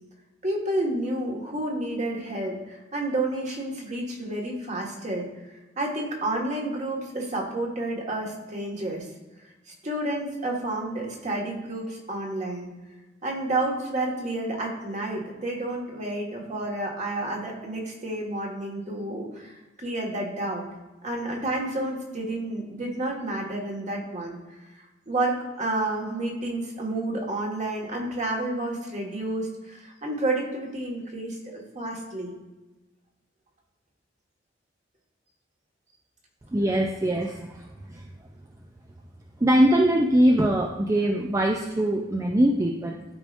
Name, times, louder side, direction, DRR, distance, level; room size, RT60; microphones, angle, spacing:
voice 1, 0.4-5.3 5.8-9.1 9.8-12.7 13.2-20.6 21.0-24.4 25.1-32.3, right 2 dB, 40° right, -1 dB, 1.7 m, -30 dB
voice 2, 36.5-38.1 39.4-43.0, right 1 dB, 15° right, 1 dB, 0.5 m, -22 dB
12.5 x 4.9 x 2.6 m, 1.1 s
head